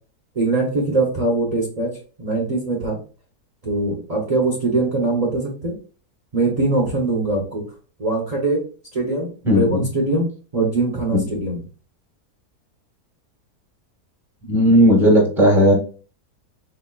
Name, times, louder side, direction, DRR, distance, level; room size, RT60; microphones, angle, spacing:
voice 1, 0.4-1.9 2.2-3.0 3.6-5.7 6.3-7.6 8.0-8.6 8.9-10.3 10.5-11.6, right 2 dB, 40° right, -2 dB, 0.6 m, -22 dB
voice 2, 9.5-9.9 11.1-11.2 14.5-15.7, equal, ahead, 0 dB, 0.7 m, -15 dB
4.2 x 2.9 x 2.3 m, 0.38 s
omnidirectional pair, 1.7 m